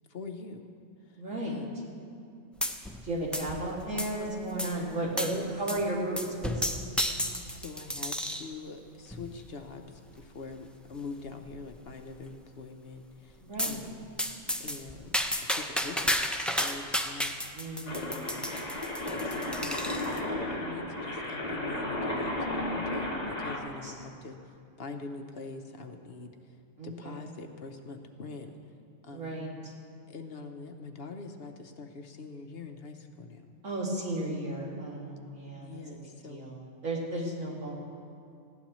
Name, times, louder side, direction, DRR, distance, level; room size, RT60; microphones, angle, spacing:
voice 1, 0.1-0.6 1.1-1.8 3.3-3.5 5.2-5.9 7.5-9.9 10.1-14.1 14.6-17.7 18.1-18.5 19.1-24.4 24.8-26.3 26.8-28.5 29.0-29.5 30.1-33.5 35.6-36.5 37.2-37.4, left 4 dB, 55° left, 5 dB, 0.9 m, -44 dB
voice 2, 1.2-1.6 3.0-6.6 7.1-7.6 13.4-13.8 17.5-18.2 23.8-23.9 26.8-27.2 29.1-29.7 33.6-35.8 36.3-36.6 36.8-37.7, right 1 dB, 80° right, -4 dB, 2.8 m, -34 dB
sound 1, 2.6-3.1 3.3-4.2 4.6-4.7 5.2-5.4 5.7-5.9 6.2-8.5 9.1-9.5 10.1-10.2 10.5-10.6 10.9-11.0 11.5-11.9 13.6-13.8 14.2-20.2, equal, ahead, 0.3 m, -32 dB
sound 2, 17.9-23.6, left 1 dB, 35° left, 1.6 m, -33 dB
19.5 x 15.5 x 3.1 m, 2.5 s
omnidirectional pair, 1.3 m